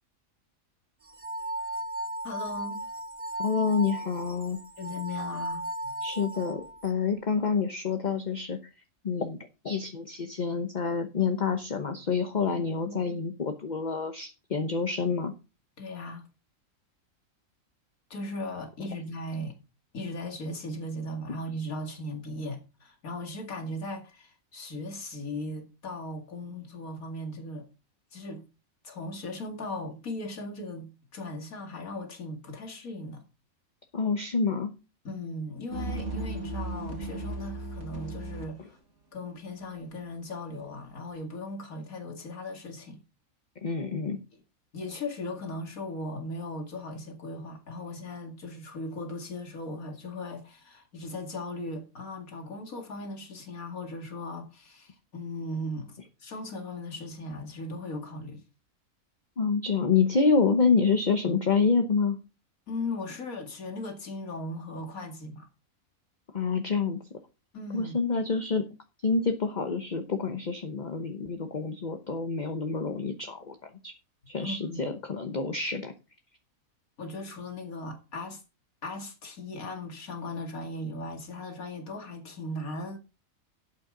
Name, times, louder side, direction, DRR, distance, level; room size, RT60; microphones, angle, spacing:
sound 1, 1.0-6.9, right 1 dB, 30° right, 0.8 m, -36 dB
voice 1, 2.2-2.8 4.8-6.0 12.8-13.2 15.8-16.2 18.1-19.5 19.9-27.7 28.1-28.4 28.8-33.2 35.0-38.8 39.1-43.0 44.7-58.4 62.7-65.5 67.5-68.0 74.4-74.8 77.0-78.4 78.8-83.0, left 1 dB, 75° left, 2.7 m, -38 dB
voice 2, 3.4-4.6 6.0-8.6 9.0-9.4 9.6-15.3 33.9-34.7 43.6-44.2 59.4-62.2 66.3-67.0 67.7-68.7 69.0-73.6 73.8-73.9 74.3-75.9, left 5 dB, 35° left, 1.0 m, -27 dB
sound 2, 35.7-38.4, right 2 dB, 55° right, 2.6 m, -35 dB
12.0 x 9.0 x 3.9 m
omnidirectional pair, 1.5 m